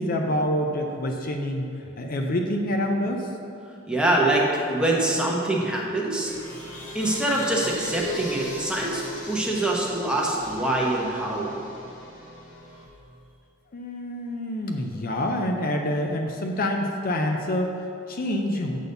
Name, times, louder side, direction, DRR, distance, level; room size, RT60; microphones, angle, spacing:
voice 1, 0.0-1.7 2.0-3.3 13.7-18.8, left 1 dB, 45° left, 3 dB, 0.5 m, -27 dB
voice 2, 3.9-6.3 6.9-11.5, right 1 dB, 5° right, -3 dB, 1.0 m, -24 dB
sound 1, 6.2-12.9, left 1 dB, 75° left, 2.0 m, -38 dB
8.2 x 4.0 x 6.7 m, 2.6 s
head